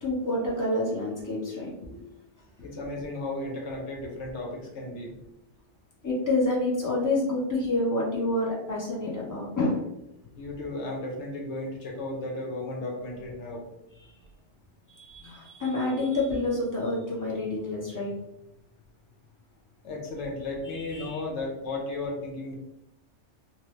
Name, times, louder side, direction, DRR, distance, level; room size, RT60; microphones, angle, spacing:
voice 1, 0.0-2.0 2.6-2.7 6.0-9.9 14.0-14.1 14.9-18.2 20.7-21.2, left 2 dB, 20° left, -5 dB, 0.8 m, -28 dB
voice 2, 2.6-5.1 10.4-13.7 19.8-22.6, left 2 dB, 80° left, 1 dB, 1.1 m, -34 dB
3.1 x 2.1 x 3.1 m, 0.85 s
omnidirectional pair, 1.2 m